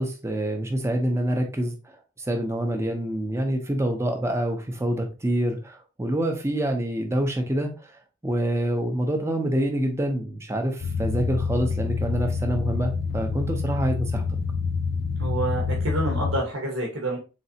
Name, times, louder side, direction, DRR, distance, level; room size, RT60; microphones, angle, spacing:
voice 1, 0.0-1.7 2.2-7.9 8.2-14.3, right 1 dB, 15° right, 3 dB, 0.6 m, -26 dB
sound 1, 10.8-16.4, left 5 dB, 45° left, 0.4 m, -27 dB
voice 2, 15.2-17.2, right 1 dB, 85° right, -1 dB, 1.1 m, -28 dB
4.1 x 3.3 x 2.7 m, 0.32 s
head